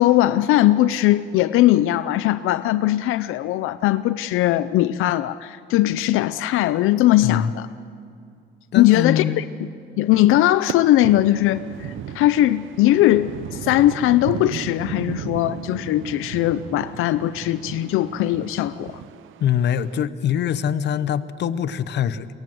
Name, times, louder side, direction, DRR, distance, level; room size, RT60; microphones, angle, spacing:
voice 1, 0.0-7.7 8.8-9.4 10.0-19.0, left 14 dB, 90° left, 12 dB, 0.5 m, -19 dB
voice 2, 7.2-7.5 8.7-9.4 19.4-22.3, left 9 dB, 60° left, 14 dB, 0.8 m, -23 dB
sound 1, 10.7-20.0, right 11 dB, 75° right, 0.6 m, -36 dB
23.0 x 17.5 x 7.7 m, 2.5 s
cardioid pair, 140°, 21 cm